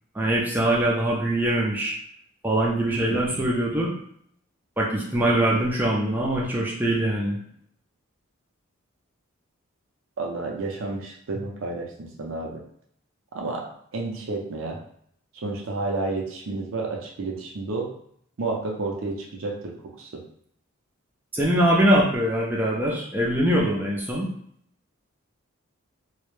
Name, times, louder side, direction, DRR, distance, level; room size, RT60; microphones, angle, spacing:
voice 1, 0.1-1.9 2.4-3.9 4.8-7.4 21.3-24.3, right 1 dB, 10° right, -4 dB, 0.4 m, -23 dB
voice 2, 3.1-3.4 10.2-12.6 13.3-13.7 13.9-14.8 15.3-17.9 18.4-20.2, right 3 dB, 65° right, 0 dB, 0.5 m, -31 dB
2.2 x 2.0 x 3.0 m, 0.66 s
head